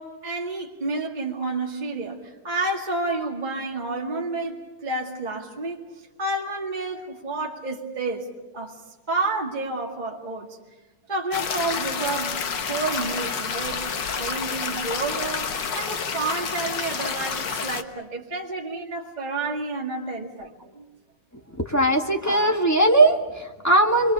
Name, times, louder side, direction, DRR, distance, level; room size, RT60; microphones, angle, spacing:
voice 1, 0.0-5.8 6.2-8.8 9.1-10.6 11.1-12.4 12.7-20.9, right 3 dB, 20° right, -2 dB, 2.1 m, -30 dB
sound 1, 11.3-17.8, left 6 dB, 60° left, 1.9 m, -29 dB
voice 2, 21.6-24.1, right 1 dB, 10° left, 2 dB, 1.8 m, -19 dB
30.0 x 23.5 x 6.9 m, 1.1 s
omnidirectional pair, 2.3 m